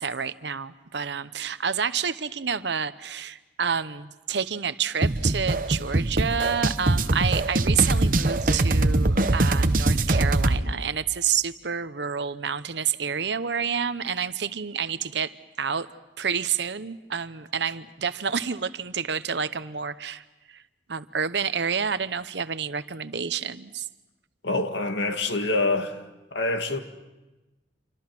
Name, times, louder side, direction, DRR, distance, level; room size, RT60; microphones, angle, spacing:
voice 1, 0.0-15.9 16.2-20.6 20.9-23.9, right 7 dB, 75° right, 0.9 m, -29 dB
sound 1, 5.0-10.6, right 2 dB, 45° right, 0.9 m, -22 dB
voice 2, 24.4-25.9 26.3-26.8, left 2 dB, 75° left, 2.0 m, -25 dB
28.0 x 25.0 x 6.1 m
head